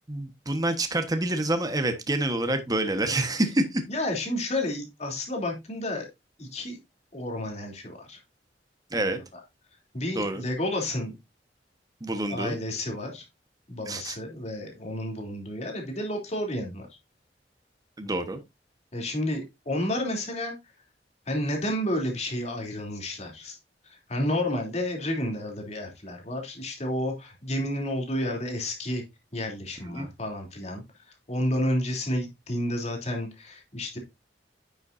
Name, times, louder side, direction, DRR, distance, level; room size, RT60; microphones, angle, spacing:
voice 1, 0.1-3.8 8.9-9.2 10.1-10.4 12.0-12.6 13.9-14.2 18.0-18.4 29.9-30.1, right 1 dB, 20° right, 1.2 m, -27 dB
voice 2, 3.9-6.1 6.4-6.8 7.1-8.2 9.0-9.1 9.9-11.1 12.3-13.2 13.7-16.9 18.9-20.5 21.3-23.6 23.8-29.0 29.3-34.0, left 1 dB, 40° left, 3.0 m, -31 dB
10.5 x 7.0 x 2.6 m
head